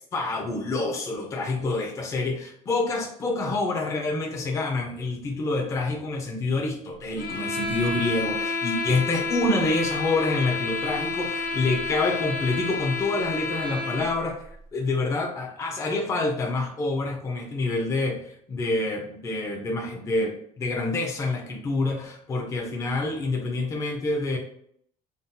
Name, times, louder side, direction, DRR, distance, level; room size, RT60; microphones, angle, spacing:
voice 1, 0.1-14.4 14.7-24.4, left 2 dB, 20° left, 1 dB, 0.5 m, -27 dB
sound 1, 7.2-14.2, left 3 dB, 90° left, 1.0 m, -30 dB
2.7 x 2.1 x 3.6 m, 0.67 s
cardioid pair, 165°, 14 cm